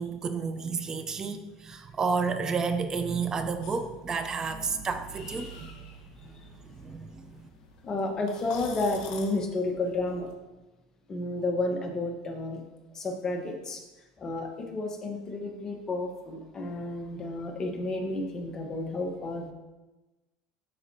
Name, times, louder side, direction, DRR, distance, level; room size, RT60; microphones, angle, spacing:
voice 1, 0.0-5.9 6.2-7.5, right 5 dB, 25° right, 9 dB, 0.6 m, -31 dB
sound 1, 3.6-10.3, left 5 dB, 70° left, 1.2 m, -48 dB
voice 2, 4.5-4.8 6.2-6.5 7.8-10.3 11.1-12.6 12.9-13.8 14.2-19.5, left 2 dB, 25° left, 2 dB, 1.2 m, -31 dB
12.0 x 4.2 x 2.8 m, 1.1 s
supercardioid pair, 115°, 2 cm